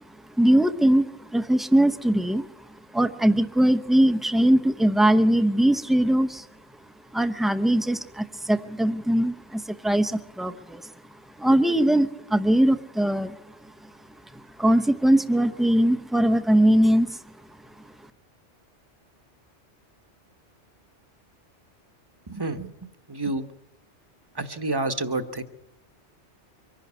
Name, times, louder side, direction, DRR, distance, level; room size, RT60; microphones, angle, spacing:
voice 1, 0.4-2.4 2.9-6.5 7.1-10.8 11.4-13.4 14.6-17.1, right 1 dB, ahead, 8 dB, 0.6 m, -21 dB
voice 2, 22.3-22.7 23.1-23.4 24.4-25.4, right 2 dB, 20° right, 8 dB, 1.1 m, -28 dB
24.0 x 11.5 x 9.5 m, 0.89 s
omnidirectional pair, 1.2 m